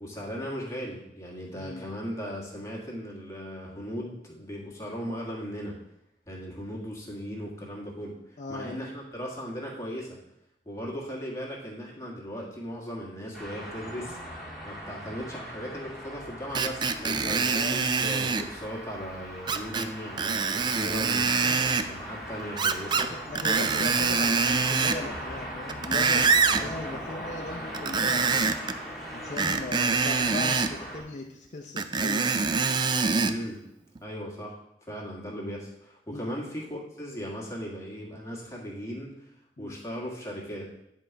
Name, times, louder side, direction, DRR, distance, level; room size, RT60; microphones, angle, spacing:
voice 1, 0.0-5.8 6.3-8.2 8.5-10.2 10.6-14.2 14.6-23.1 23.7-24.1 26.5-26.7 33.2-33.6 34.0-34.6 34.9-39.1 39.6-40.7, equal, 15° left, -3 dB, 1.7 m, -37 dB
voice 2, 1.5-1.9 8.4-8.7 17.1-18.0 21.4-21.9 23.0-26.3 26.6-28.6 29.1-32.5 36.1-36.3 39.6-39.8, left 2 dB, 40° left, 1 dB, 0.6 m, -39 dB
sound 1, 13.3-31.0, equal, ahead, 1.7 m, -40 dB
Screech, 16.5-18.5 19.5-19.9 20.2-21.9 22.6-23.1 23.3-25.0 25.5-26.6 27.7-28.7 29.4-30.7 31.8-33.4 33.9-34.0, right 5 dB, 25° right, 0.3 m, -25 dB
9.7 x 3.8 x 4.5 m, 0.81 s
head